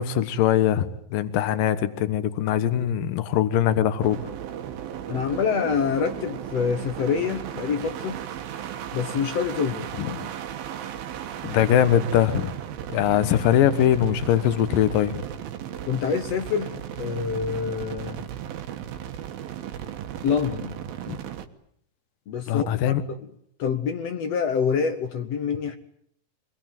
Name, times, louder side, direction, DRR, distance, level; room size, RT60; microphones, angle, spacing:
voice 1, 0.0-4.2 10.0-10.1 11.4-12.5 12.9-15.2 21.1-21.2 22.5-23.0, left 10 dB, 75° left, 2.9 m, -22 dB
sound 1, 4.0-21.5, right 10 dB, 90° right, 3.2 m, -35 dB
voice 2, 5.1-8.2 8.9-9.9 15.8-18.2 20.2-20.8 22.3-23.3 23.6-25.8, left 6 dB, 60° left, 1.9 m, -26 dB
25.0 x 21.0 x 9.1 m
omnidirectional pair, 4.0 m